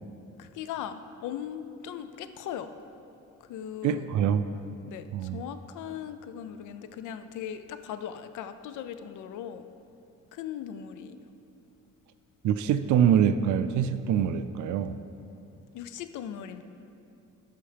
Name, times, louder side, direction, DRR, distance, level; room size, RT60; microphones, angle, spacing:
voice 1, 0.4-2.7 3.5-4.1 4.9-9.7 10.3-11.2 15.7-16.6, left 9 dB, 80° left, 10 dB, 0.5 m, -39 dB
voice 2, 3.8-4.4 5.1-5.4 12.4-15.0, right 8 dB, 75° right, 11 dB, 0.4 m, -24 dB
14.0 x 5.6 x 3.4 m, 2.6 s
cardioid pair, 90°, 30 cm